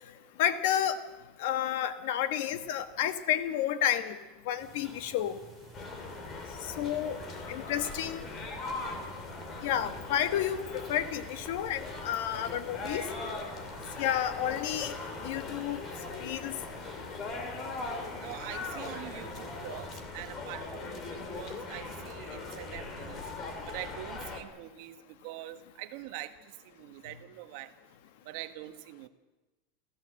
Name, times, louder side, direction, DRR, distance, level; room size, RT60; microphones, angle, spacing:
voice 1, 0.4-1.0 1.4-4.2 4.5-5.4 6.8-7.2 7.5-8.2 9.6-13.0 14.0-14.9 15.2-15.8 16.2-16.6, left 10 dB, 55° left, 11 dB, 1.4 m, -30 dB
sound 1, 4.6-19.9, right 2 dB, 5° left, 4.1 m, -52 dB
sound 2, 5.7-24.4, left 3 dB, 25° left, 2.7 m, -40 dB
voice 2, 18.2-23.2 23.7-27.7 28.2-29.1, right 15 dB, 50° right, 9 dB, 1.4 m, -44 dB
26.5 x 15.5 x 7.7 m, 1.1 s
supercardioid pair, 170°, 0 cm